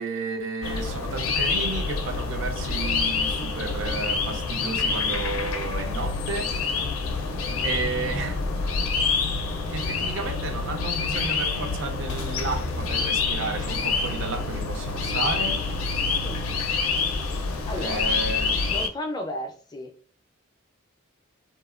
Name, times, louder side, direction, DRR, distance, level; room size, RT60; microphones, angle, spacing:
voice 1, 0.0-6.6 7.6-8.4 9.7-15.6 17.7-18.6, right 4 dB, 65° right, 0.4 m, -32 dB
sound 1, 0.6-18.9, left 4 dB, 85° left, 0.4 m, -27 dB
voice 2, 17.7-18.2 18.7-19.9, left 1 dB, 20° left, 0.4 m, -33 dB
2.8 x 2.1 x 2.4 m
head